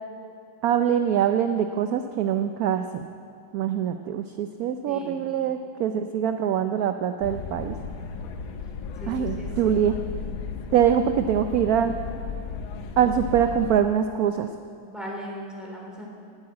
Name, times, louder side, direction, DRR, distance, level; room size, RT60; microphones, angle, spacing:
voice 1, 0.6-3.1 3.5-7.7 9.1-10.0 10.7-12.0 13.0-14.5, right 9 dB, 70° right, 8 dB, 0.9 m, -24 dB
voice 2, 4.8-5.3 9.0-9.7 10.7-11.0 14.9-16.1, equal, ahead, -3 dB, 3.2 m, -38 dB
sound 1, 7.2-13.8, left 5 dB, 80° left, 1.7 m, -35 dB
18.0 x 8.7 x 8.5 m, 2.5 s
omnidirectional pair, 2.1 m